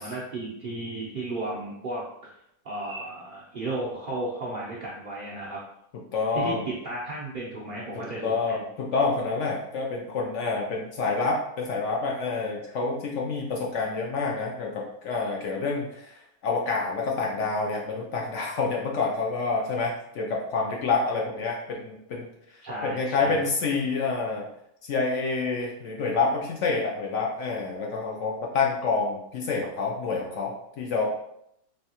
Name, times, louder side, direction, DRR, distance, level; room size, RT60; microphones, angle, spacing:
voice 1, 0.0-2.3 2.6-5.6 6.3-8.6 22.6-23.4, right 2 dB, 60° right, -6 dB, 0.5 m, -34 dB
voice 2, 6.1-6.6 7.9-22.3 22.8-24.5 24.8-31.1, left 4 dB, 65° left, -1 dB, 0.8 m, -28 dB
3.2 x 2.7 x 2.8 m, 0.77 s
omnidirectional pair, 1.6 m